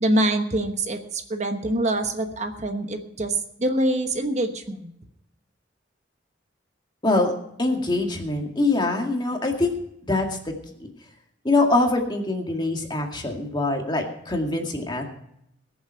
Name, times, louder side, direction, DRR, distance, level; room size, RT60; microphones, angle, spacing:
voice 1, 0.0-4.9, right 1 dB, 40° right, 6 dB, 1.1 m, -25 dB
voice 2, 7.6-9.7 10.0-10.4 10.8-10.9 11.4-15.0, left 2 dB, 25° left, 2 dB, 2.1 m, -23 dB
21.5 x 7.2 x 5.7 m, 0.76 s
head